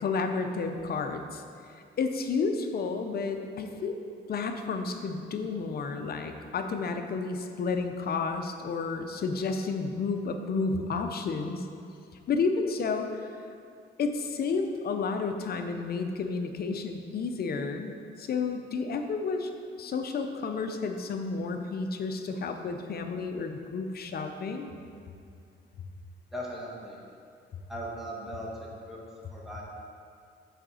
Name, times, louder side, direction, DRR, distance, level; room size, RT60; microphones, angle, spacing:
voice 1, 0.0-1.4 2.0-4.0 4.3-11.6 12.3-13.1 14.0-19.5 19.8-24.7, left 4 dB, 50° left, 6 dB, 0.7 m, -31 dB
voice 2, 26.3-27.0 27.7-29.0 29.3-29.6, equal, ahead, -5 dB, 1.6 m, -38 dB
6.4 x 4.9 x 4.9 m, 2.5 s
cardioid pair, 90°, 20 cm